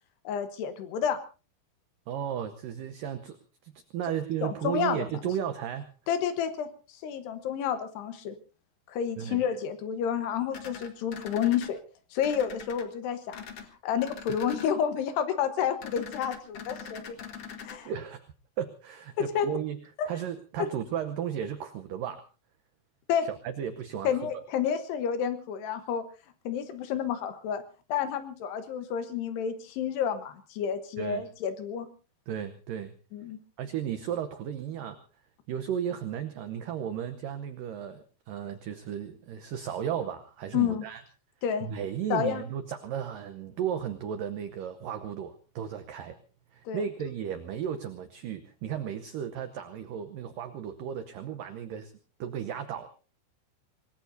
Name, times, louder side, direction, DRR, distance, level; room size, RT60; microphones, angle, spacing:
voice 1, 0.2-1.2 4.4-5.0 6.1-6.7 7.0-8.3 8.9-11.8 12.1-13.4 13.8-17.2 17.6-17.9 19.2-19.5 20.0-20.1 23.1-23.3 24.0-26.0 26.4-27.6 27.9-31.9 33.1-33.4 40.5-40.8 41.4-41.7 42.1-42.4 46.7-46.8, left 8 dB, 70° left, 9 dB, 3.1 m, -30 dB
voice 2, 2.1-3.4 3.6-5.9 9.2-9.4 17.9-18.3 18.6-19.8 20.1-22.2 23.2-24.4 31.0-31.3 32.3-32.9 33.6-35.0 35.5-41.0 41.6-46.2 46.5-51.9 52.2-52.9, right 9 dB, 85° right, 9 dB, 1.9 m, -34 dB
sound 1, 10.5-11.7 12.2-12.8 13.3-13.7 14.0-14.7 15.8-17.8, left 7 dB, 55° left, 1.6 m, -43 dB
26.5 x 19.0 x 2.7 m, 0.35 s
omnidirectional pair, 5.2 m